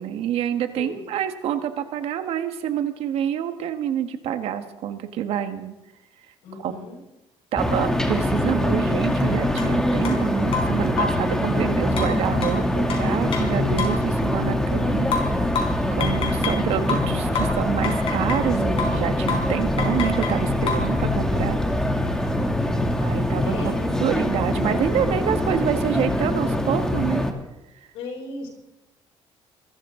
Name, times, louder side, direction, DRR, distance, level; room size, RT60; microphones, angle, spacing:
voice 1, 0.0-5.7 6.5-6.7 7.5-15.1 15.9-21.6 23.0-27.2, right 9 dB, 80° right, 8 dB, 1.6 m, -27 dB
voice 2, 6.4-7.0 22.3-22.9 23.4-24.0 24.6-25.1 27.9-28.5, left 3 dB, 90° left, -1 dB, 7.6 m, -37 dB
sound 1, 7.6-27.3, left 1 dB, 5° left, 2.5 m, -23 dB
sound 2, 9.6-9.7 10.0-10.2 10.5-11.3 12.0-14.1 15.1-16.6 16.9-18.5 18.8-19.0 19.3-19.5 19.8-20.9, left 4 dB, 65° left, 5.0 m, -29 dB
26.0 x 14.0 x 3.9 m, 0.96 s
cardioid pair, 95°, 10 cm